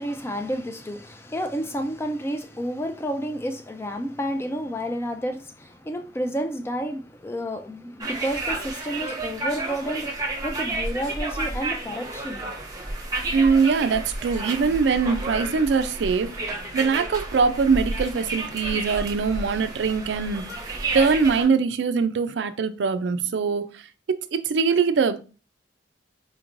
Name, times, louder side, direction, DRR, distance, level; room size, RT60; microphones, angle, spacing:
voice 1, 0.0-12.5, equal, 15° left, 0.4 m, -30 dB
sound 1, 8.0-21.5, right 2 dB, 20° right, 0.8 m, -31 dB
voice 2, 13.3-16.3 16.7-20.4 20.9-23.7 24.1-25.2, right 5 dB, 80° right, 0.4 m, -22 dB
4.3 x 3.1 x 2.5 m
head